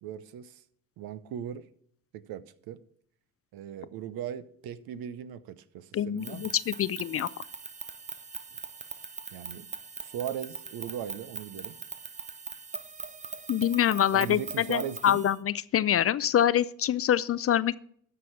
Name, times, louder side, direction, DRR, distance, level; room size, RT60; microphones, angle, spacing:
voice 1, 0.0-0.6 1.0-1.7 2.1-2.8 3.5-6.5 9.3-9.7 10.0-11.8 14.1-15.2, right 9 dB, 70° right, 0.8 m, -38 dB
voice 2, 5.9-7.3 13.5-17.7, left 10 dB, 40° left, 0.4 m, -25 dB
sound 1, 6.2-15.4, right 4 dB, 20° right, 0.7 m, -41 dB
13.0 x 4.8 x 5.7 m
supercardioid pair, 70°, 38 cm